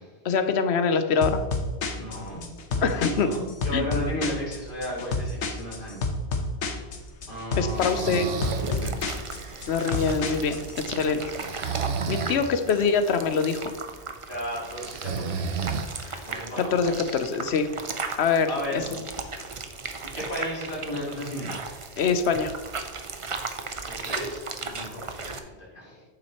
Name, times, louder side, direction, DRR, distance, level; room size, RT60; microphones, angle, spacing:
voice 1, 0.2-1.4 2.8-3.3 3.7-3.9 7.6-8.3 9.7-10.6 10.9-11.2 11.6-11.7 12.1-13.7 16.1-16.2 16.6-17.7 18.2-18.8 22.0-22.5, left 5 dB, 75° left, 9 dB, 1.0 m, -24 dB
sound 1, 1.2-10.7, left 2 dB, 90° left, 1.2 m, -30 dB
voice 2, 2.0-6.0 7.3-9.2 10.5-10.6 11.0-11.5 14.3-15.9 16.3-17.2 18.5-19.0 20.1-21.6 23.9-26.0, left 1 dB, 50° left, -6 dB, 3.1 m, -35 dB
Breathing, 7.7-8.7 11.4-12.4 14.8-16.2, right 6 dB, 70° right, 0.9 m, -31 dB
sound 2, 8.4-25.4, right 4 dB, 35° right, 0.6 m, -36 dB
9.1 x 7.4 x 3.0 m, 1.2 s
omnidirectional pair, 1.1 m